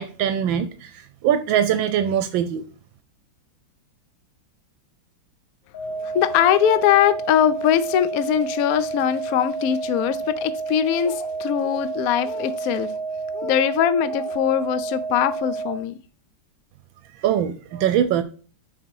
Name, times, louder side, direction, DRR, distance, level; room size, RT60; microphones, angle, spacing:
voice 1, 0.0-2.6 17.2-18.2, right 9 dB, 80° right, 1.3 m, -22 dB
sound 1, 5.7-15.7, right 4 dB, 40° left, 1.0 m, -30 dB
voice 2, 6.0-12.9 13.3-16.0, left 10 dB, 75° left, 0.8 m, -21 dB
6.2 x 4.2 x 4.7 m
omnidirectional pair, 2.2 m